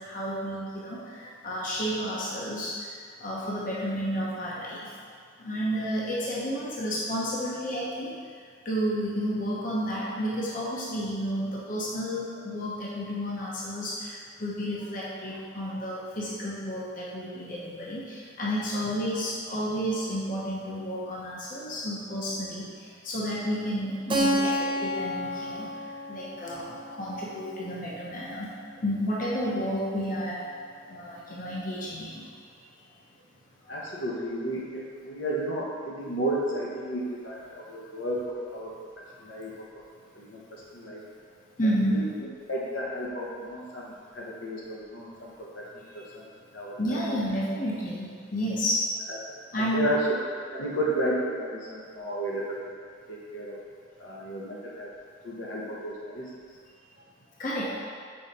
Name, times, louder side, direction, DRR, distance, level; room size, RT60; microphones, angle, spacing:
voice 1, 0.0-2.7 3.2-4.8 5.4-8.1 8.6-22.7 23.0-25.7 26.1-28.5 28.8-30.4 30.9-32.2 41.6-42.0 46.8-48.8 49.5-49.9 57.4-57.7, equal, 45° left, -6 dB, 1.0 m, -31 dB
Keyboard (musical), 24.1-28.6, equal, 25° right, 0.5 m, -31 dB
voice 2, 33.7-38.7 39.2-39.5 40.1-40.4 40.7-41.0 41.6-45.6 45.9-46.3 46.5-47.0 49.1-49.2 49.5-50.0 50.4-52.7 53.1-53.6 54.0-54.9 55.2-56.2, equal, 80° left, -4 dB, 1.1 m, -33 dB
5.6 x 4.0 x 4.3 m, 2.1 s
head